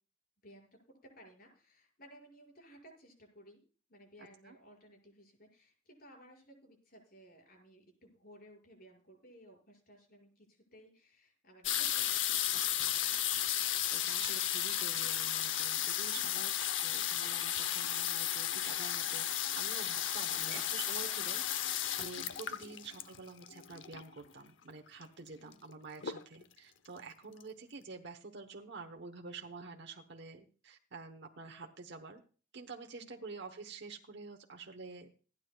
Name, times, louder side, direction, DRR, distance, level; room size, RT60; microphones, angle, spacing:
voice 1, 0.4-3.6 3.9-12.6 16.1-16.6 20.3-20.5 22.6-22.8 25.3-25.6 32.9-33.3, equal, 50° left, 0 dB, 6.0 m, -58 dB
sound 1, 11.6-24.2 25.0-25.1 25.3-25.7 26.0-26.6 27.1-27.2 27.4-27.5, left 11 dB, 75° left, 0.8 m, -34 dB
voice 2, 13.9-19.3 19.6-32.2 32.5-35.1, right 4 dB, 65° right, 3 dB, 1.1 m, -48 dB
27.5 x 9.6 x 2.4 m, 0.38 s
head